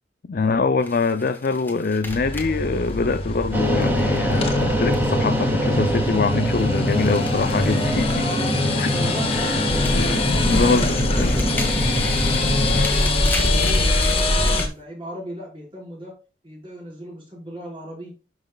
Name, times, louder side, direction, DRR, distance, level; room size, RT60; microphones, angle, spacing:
voice 1, 0.3-8.3 8.8-8.9 9.3-9.6 9.9-11.4, left 4 dB, 55° left, 0.5 m, -24 dB
sound 1, 0.8-5.4 5.7-8.6 9.0-14.7, left 2 dB, 10° left, 1.6 m, -37 dB
sound 2, 2.1-14.7, left 2 dB, 35° left, 1.6 m, -24 dB
sound 3, 3.5-12.9, equal, 10° right, 2.1 m, -24 dB
voice 2, 8.9-11.8 12.4-16.1 16.4-18.1, equal, 30° right, 4.8 m, -37 dB
12.0 x 6.1 x 2.3 m
head